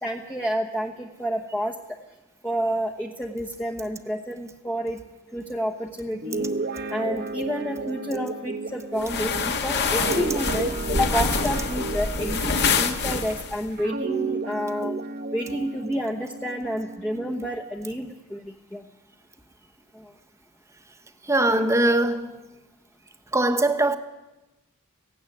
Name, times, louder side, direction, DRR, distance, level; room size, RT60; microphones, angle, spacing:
voice 1, 0.0-1.8 2.4-5.0 5.3-6.5 6.9-14.9 15.3-18.8 19.9-20.1 21.5-21.7, equal, 5° left, 1.1 m, -29 dB
Guitar, 6.1-13.3 13.8-17.5, right 3 dB, 45° right, 1.1 m, -32 dB
sound 1, 9.0-13.6, left 4 dB, 50° left, 1.7 m, -26 dB
voice 2, 21.2-22.6 23.3-24.0, right 2 dB, 15° right, 1.2 m, -22 dB
16.5 x 16.5 x 9.9 m
head